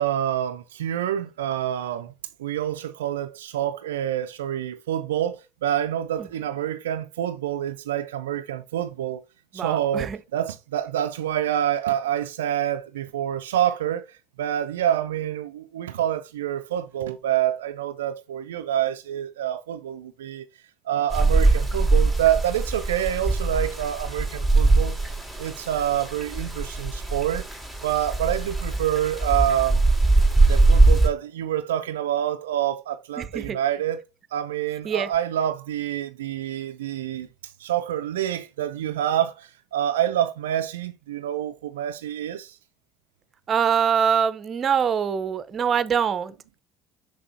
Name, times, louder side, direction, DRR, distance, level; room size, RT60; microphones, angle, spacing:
voice 1, 0.0-2.1 2.4-9.2 9.5-20.4 20.9-25.0 25.4-27.5 27.8-29.8 30.5-34.0 34.3-42.6, right 11 dB, 85° right, 0.3 m, -27 dB
voice 2, 9.5-10.2 33.2-33.6 34.8-35.1 43.5-46.3, right 7 dB, 40° right, 0.6 m, -24 dB
sound 1, 21.1-31.1, right 2 dB, 10° left, 3.5 m, -21 dB
6.2 x 6.1 x 2.6 m
hypercardioid pair, 65°, 0 cm